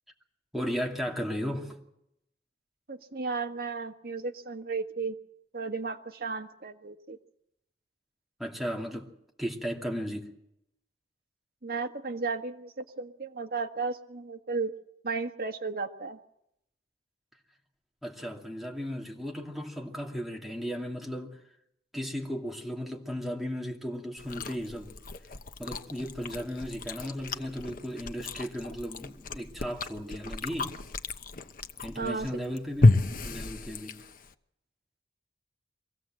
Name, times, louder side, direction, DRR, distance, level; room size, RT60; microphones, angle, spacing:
voice 1, 0.5-1.8 8.4-9.1 9.4-10.3 18.0-21.4 21.9-25.0 25.6-30.8 31.8-32.9 33.2-34.0, equal, ahead, 2.6 m, -35 dB
voice 2, 2.9-5.1 5.5-7.2 11.6-14.7 15.0-16.2 31.9-32.3, right 4 dB, 55° right, 1.6 m, -34 dB
Chewing mastication, 24.2-34.3, left 2 dB, 50° left, 1.0 m, -31 dB
24.0 x 16.5 x 7.7 m
head